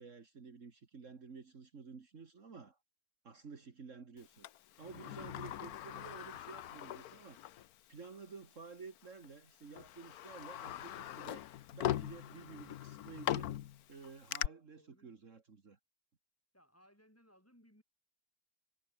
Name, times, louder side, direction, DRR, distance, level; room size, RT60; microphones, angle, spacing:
voice 1, 0.0-2.8 3.2-4.5 4.8-7.4 7.9-11.5 11.7-13.5 13.9-15.8, right 5 dB, 55° right, 2.2 m, -52 dB
Sliding door, 4.4-7.7 8.0-8.1 9.1-9.3 9.7-14.5, left 12 dB, 90° left, 1.3 m, -41 dB
voice 2, 14.7-15.1 16.5-17.8, equal, 10° left, 6.8 m, -65 dB
omnidirectional pair, 1.5 m